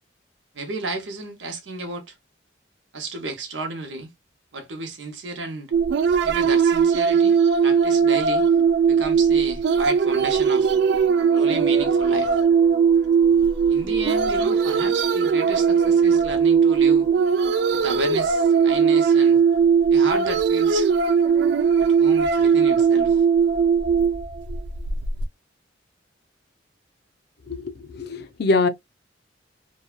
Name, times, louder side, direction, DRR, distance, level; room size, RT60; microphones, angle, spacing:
voice 1, 0.5-2.1 2.9-4.1 4.5-5.7 6.2-8.5 8.9-10.7 11.3-12.3 13.7-17.1 17.7-19.4 19.9-20.9 21.8-23.2, right 3 dB, 85° right, 0.8 m, -32 dB
sound 1, 5.7-25.3, right 6 dB, 65° right, 0.3 m, -19 dB
sound 2, 10.0-19.4, left 3 dB, ahead, 0.6 m, -41 dB
voice 2, 27.9-28.7, left 3 dB, 60° left, 0.5 m, -22 dB
2.6 x 2.2 x 2.3 m
head